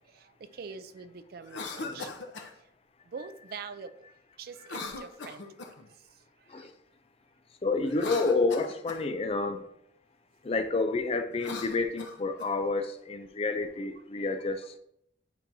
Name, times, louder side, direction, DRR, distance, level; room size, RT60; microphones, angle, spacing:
voice 1, 0.0-2.1 3.1-4.1 4.4-5.4 5.9-6.7 14.2-14.3, right 5 dB, 55° right, 12 dB, 0.4 m, -45 dB
Cough, 1.4-2.5 4.6-5.9 7.8-9.0 11.3-12.5, left 3 dB, 90° left, 0.8 m, -39 dB
voice 2, 7.6-9.7 10.4-14.8, left 3 dB, 35° left, 8 dB, 0.5 m, -29 dB
9.1 x 4.5 x 2.7 m, 0.75 s
head